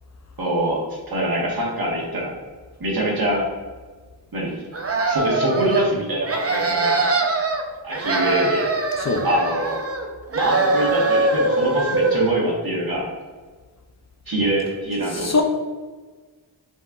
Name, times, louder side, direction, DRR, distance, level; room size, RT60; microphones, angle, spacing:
voice 1, 0.4-2.3 2.8-3.5 4.3-4.5 5.1-7.0 7.8-8.7 9.2-9.8 10.3-13.1 14.3-15.3, right 1 dB, 55° right, -4 dB, 1.4 m, -24 dB
sound 1, 4.7-5.9 6.2-7.6 7.9-10.1 10.3-12.3, right 2 dB, 35° right, 0.6 m, -22 dB
voice 2, 9.0-9.3 15.1-15.4, left 4 dB, 40° left, 4 dB, 0.5 m, -22 dB
5.2 x 3.7 x 2.4 m, 1.4 s
wide cardioid pair, 55°, 44 cm